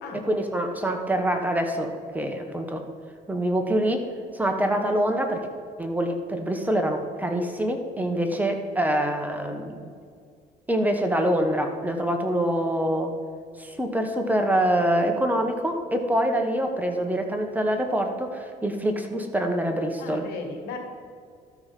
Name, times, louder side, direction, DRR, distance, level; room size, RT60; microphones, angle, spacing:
voice 1, 0.3-2.8 3.3-4.0 4.3-5.5 5.8-9.9 10.7-13.1 13.6-20.3, right 1 dB, 10° right, 4 dB, 1.0 m, -25 dB
voice 2, 8.0-8.4 20.0-20.8, left 4 dB, 85° left, 3 dB, 1.6 m, -37 dB
13.0 x 4.7 x 5.7 m, 2.1 s
cardioid pair, 110°, 17 cm